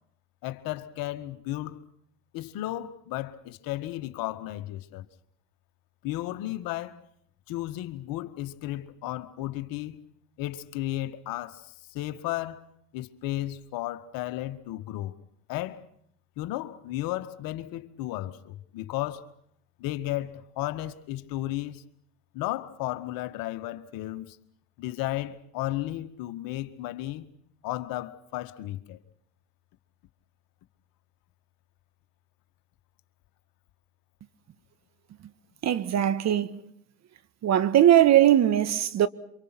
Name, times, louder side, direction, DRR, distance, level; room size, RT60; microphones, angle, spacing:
voice 1, 0.4-1.9 2.3-5.1 6.0-7.0 7.5-10.1 10.4-12.7 12.9-15.2 15.5-15.9 16.4-19.3 19.8-21.8 22.3-24.4 24.8-27.3 27.6-29.0, left 15 dB, 60° left, 2.0 m, -34 dB
voice 2, 35.6-36.6 37.4-39.1, right 11 dB, 45° right, 1.7 m, -20 dB
28.0 x 25.5 x 6.1 m
hypercardioid pair, 90°, 38 cm